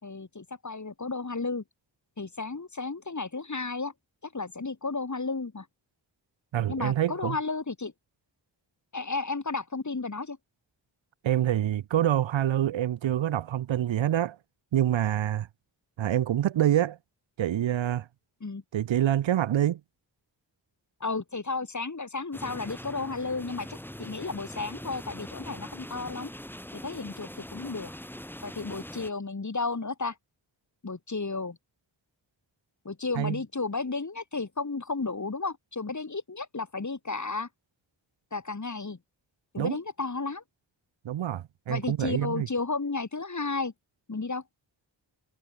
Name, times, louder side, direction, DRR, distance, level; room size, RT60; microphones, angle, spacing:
voice 1, 0.0-1.6 2.2-3.9 4.2-5.7 6.7-7.9 8.9-10.4 18.4-18.6 21.0-26.3 26.7-27.9 28.4-30.2 30.8-31.6 32.8-37.5 38.3-39.0 39.5-40.4 41.7-43.7 44.1-44.4, left 3 dB, 40° left, 4.4 m, -33 dB
voice 2, 6.5-7.4 11.2-14.4 14.7-15.5 16.0-17.0 17.4-18.1 18.7-19.8 33.2-33.4 39.6-39.8 41.0-42.5, right 11 dB, 85° right, 0.7 m, -26 dB
sound 1, 22.3-29.1, left 1 dB, 5° left, 1.3 m, -42 dB
wide cardioid pair, 95°, 44 cm